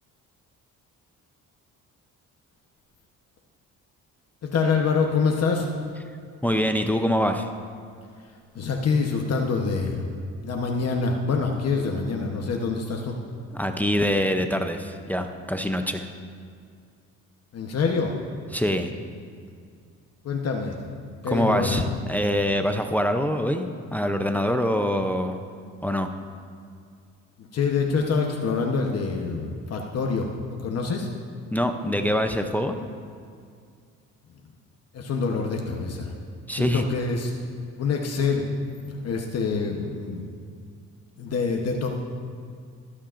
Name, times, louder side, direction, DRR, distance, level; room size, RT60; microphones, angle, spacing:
voice 1, 4.4-5.7 8.5-10.0 10.4-13.2 17.5-18.1 20.2-20.8 21.2-21.8 27.4-31.1 34.9-36.1 36.5-37.3 37.8-38.5 38.9-40.2 41.2-41.9, left 4 dB, 50° left, 1 dB, 1.0 m, -26 dB
voice 2, 6.4-7.5 13.5-16.1 18.5-18.9 21.3-25.4 25.8-26.1 31.5-32.8 36.5-36.8, equal, 5° left, 6 dB, 0.5 m, -24 dB
22.5 x 8.6 x 2.5 m, 2.2 s
cardioid pair, 115°, 32 cm